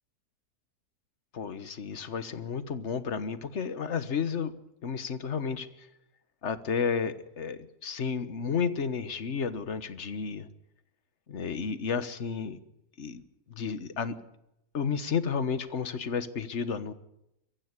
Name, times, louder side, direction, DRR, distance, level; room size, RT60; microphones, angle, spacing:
voice 1, 1.3-4.5 4.8-5.9 6.4-10.5 11.3-12.6 13.0-13.2 13.5-14.2 14.7-16.9, left 6 dB, 50° left, 12 dB, 1.5 m, -32 dB
23.5 x 15.0 x 9.8 m, 0.84 s
omnidirectional pair, 1.7 m